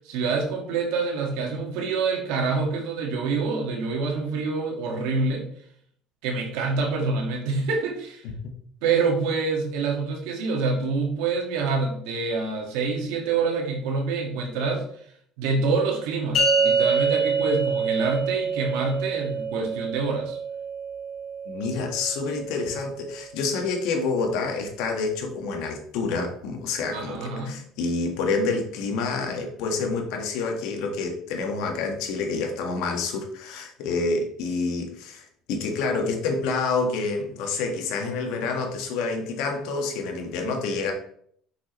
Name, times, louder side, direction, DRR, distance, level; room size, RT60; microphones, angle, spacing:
voice 1, 0.0-5.5 6.2-8.2 8.8-14.8 15.4-20.4 26.9-27.6, right 4 dB, 80° right, 2 dB, 1.8 m, -26 dB
sound 1, 16.3-22.9, right 4 dB, 60° left, 2.2 m, -26 dB
voice 2, 21.4-40.9, left 4 dB, 80° left, 3 dB, 1.5 m, -28 dB
6.1 x 6.1 x 3.1 m, 0.63 s
supercardioid pair, 95°, 0 cm